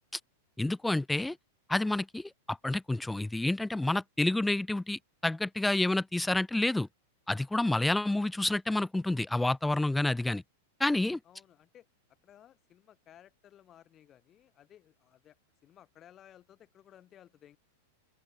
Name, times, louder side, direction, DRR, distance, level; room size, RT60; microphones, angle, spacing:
voice 1, 0.6-1.4 1.7-6.9 7.3-10.4 10.8-11.2, left 2 dB, 5° left, 0.3 m, -29 dB
voice 2, 11.2-11.9 12.2-15.4 15.6-17.6, left 11 dB, 25° left, 4.6 m, -58 dB
open air
supercardioid pair, 150°, 0 cm